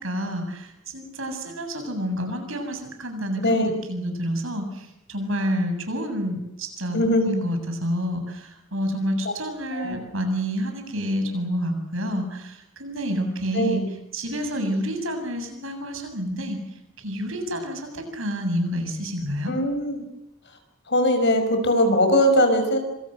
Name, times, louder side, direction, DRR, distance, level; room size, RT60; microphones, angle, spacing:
voice 1, 0.0-7.0 7.2-13.8 14.1-16.6 17.0-19.5, equal, 75° right, 6 dB, 7.8 m, -28 dB
voice 2, 3.4-3.7 6.9-7.3 9.2-9.3 9.7-10.0 13.5-13.8 19.5-20.0 20.9-22.8, left 1 dB, 55° left, 6 dB, 5.7 m, -21 dB
27.0 x 26.0 x 6.6 m, 0.86 s
head